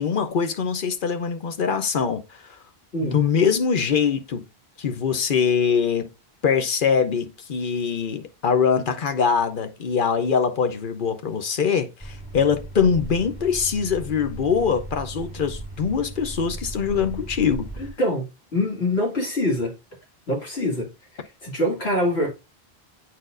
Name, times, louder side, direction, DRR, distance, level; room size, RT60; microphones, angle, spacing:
voice 1, 0.0-2.4 3.0-4.5 4.8-6.1 6.4-17.7, left 6 dB, 55° left, 0.9 m, -23 dB
sound 1, 12.0-17.9, right 2 dB, 5° left, 2.0 m, -37 dB
voice 2, 17.8-18.2 18.5-19.7 20.3-20.9 21.1-22.3, left 1 dB, 75° left, 2.6 m, -24 dB
9.0 x 4.3 x 2.5 m
omnidirectional pair, 1.1 m